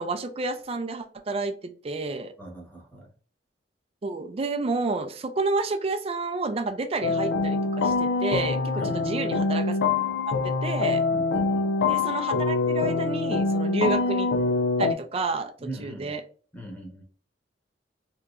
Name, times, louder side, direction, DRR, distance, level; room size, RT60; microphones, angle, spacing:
voice 1, 0.0-2.3 4.0-9.8 10.3-11.1 11.9-14.3 14.8-15.5 15.8-16.2, right 3 dB, 35° right, 7 dB, 0.4 m, -30 dB
voice 2, 2.4-3.1 8.7-9.1 11.1-11.7 15.6-16.2 16.5-17.0, right 1 dB, 10° left, -1 dB, 1.0 m, -40 dB
sound 1, 7.0-14.9, left 3 dB, 75° left, 0.4 m, -25 dB
3.4 x 2.9 x 2.4 m, 0.42 s
head